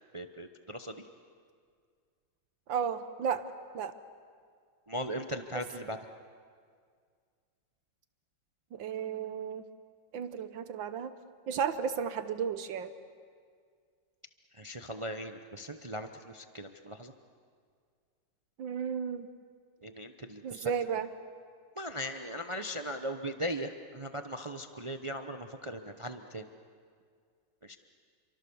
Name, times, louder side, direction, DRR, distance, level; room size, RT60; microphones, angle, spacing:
voice 1, 0.1-1.0 4.9-6.0 14.5-17.1 19.8-20.7 21.8-26.5 27.6-27.8, equal, 45° right, 7 dB, 0.4 m, -39 dB
voice 2, 2.7-3.4 3.7-3.9 8.7-9.6 10.1-11.1 11.5-12.9 18.6-19.3 20.4-21.1, right 7 dB, 75° right, 11 dB, 1.7 m, -33 dB
29.0 x 24.0 x 7.1 m, 2.1 s
omnidirectional pair, 2.1 m